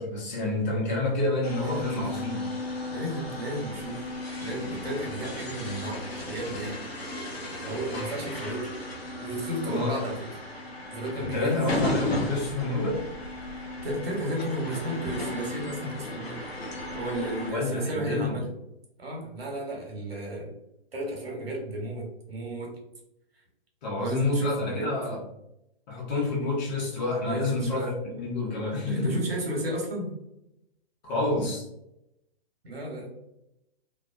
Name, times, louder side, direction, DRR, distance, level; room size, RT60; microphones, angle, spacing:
voice 1, 0.0-2.4 9.7-10.0 11.2-13.0 17.5-18.4 23.8-25.2 25.9-29.3 31.0-31.7, left 2 dB, 45° left, -2 dB, 0.9 m, -28 dB
sound 1, 1.4-17.5, left 1 dB, 85° left, 0.8 m, -35 dB
voice 2, 1.6-2.1 2.9-4.1 4.4-6.8 7.6-8.7 9.2-10.2 10.9-12.0 13.8-16.4 16.9-18.5 19.0-20.5 20.9-22.7 24.0-24.9 27.2-27.8 28.9-30.1 32.6-33.1, right 1 dB, 75° right, -1 dB, 1.0 m, -33 dB
2.5 x 2.1 x 2.4 m, 0.85 s
figure-of-eight pair, 120°, 30 cm